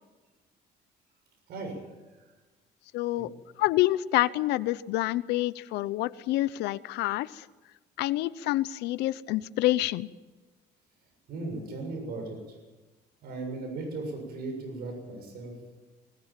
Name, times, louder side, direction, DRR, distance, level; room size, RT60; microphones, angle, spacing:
voice 1, 1.5-1.8 3.1-3.3 11.3-12.4 13.2-15.5, right 2 dB, 70° right, 3 dB, 7.2 m, -37 dB
voice 2, 2.9-3.3 3.6-7.5 8.0-10.1, left 16 dB, 85° left, 17 dB, 0.8 m, -27 dB
20.0 x 19.5 x 7.5 m, 1.2 s
cardioid pair, 110°, 17 cm